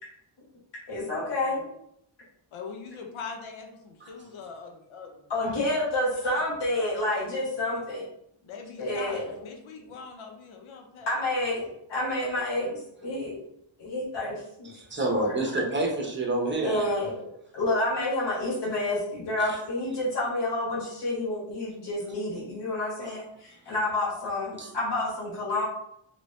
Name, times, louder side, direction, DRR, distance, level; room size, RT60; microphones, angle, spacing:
voice 1, 0.9-1.7 5.3-8.1 8.8-9.3 11.1-13.4 13.8-14.8 15.0-15.4 16.5-17.3 17.5-25.6, left 1 dB, 60° left, -7 dB, 1.2 m, -29 dB
voice 2, 2.5-5.8 6.1-6.5 8.4-11.4, left 5 dB, 80° left, 2 dB, 0.7 m, -42 dB
voice 3, 14.7-16.8 19.4-19.6 24.6-24.7, right 2 dB, 25° right, -1 dB, 0.8 m, -28 dB
3.0 x 2.6 x 3.1 m, 0.75 s
cardioid pair, 85°, 48 cm